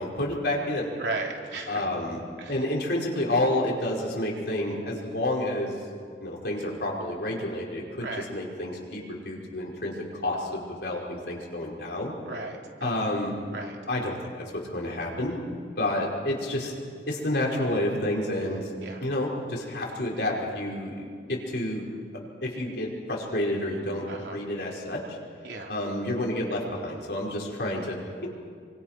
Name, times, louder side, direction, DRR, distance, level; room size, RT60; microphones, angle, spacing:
voice 1, 0.0-0.9 1.7-2.2 2.5-5.8 6.2-12.1 12.8-13.4 13.9-14.2 14.5-15.4 15.8-16.7 17.1-18.7 19.0-21.8 22.4-24.0 24.3-25.2 25.7-28.3, left 1 dB, 65° left, -2 dB, 5.4 m, -29 dB
voice 2, 1.0-1.9 2.4-2.5 8.0-8.2 12.2-13.1 13.5-13.8 18.8-19.0 24.1-24.4 25.4-25.7, right 2 dB, 75° right, 1 dB, 3.3 m, -35 dB
25.5 x 25.0 x 6.1 m, 2.2 s
head